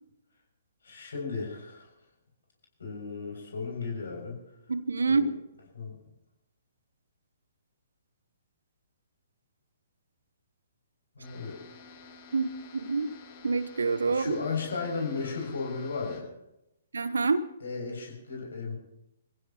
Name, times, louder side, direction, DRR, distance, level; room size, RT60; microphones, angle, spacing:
voice 1, 0.8-1.9 2.8-4.4 5.1-5.3 5.7-5.9 11.2-11.6 14.1-16.3 17.6-18.7, left 4 dB, 60° left, 0 dB, 7.0 m, -35 dB
voice 2, 4.7-5.3 12.3-13.1 13.4-14.4 16.9-17.4, right 4 dB, 65° right, 15 dB, 0.9 m, -27 dB
sound 1, 11.2-16.2, left 4 dB, 35° left, 7.2 m, -50 dB
27.0 x 15.5 x 3.1 m, 0.88 s
figure-of-eight pair, 120°, 0 cm